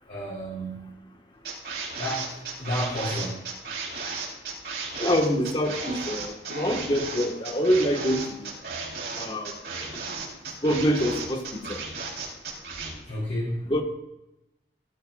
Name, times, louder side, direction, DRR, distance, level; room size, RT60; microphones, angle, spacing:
voice 1, 0.1-0.9 2.0-2.2 2.6-3.5 13.1-13.6, equal, 50° left, -9 dB, 4.0 m, -31 dB
sound 1, 1.4-12.9, right 4 dB, 65° right, 4.0 m, -34 dB
voice 2, 5.0-8.5 9.1-9.5 10.6-11.8 13.7-13.8, equal, 30° left, 2 dB, 1.7 m, -25 dB
16.5 x 12.5 x 2.6 m, 0.91 s
head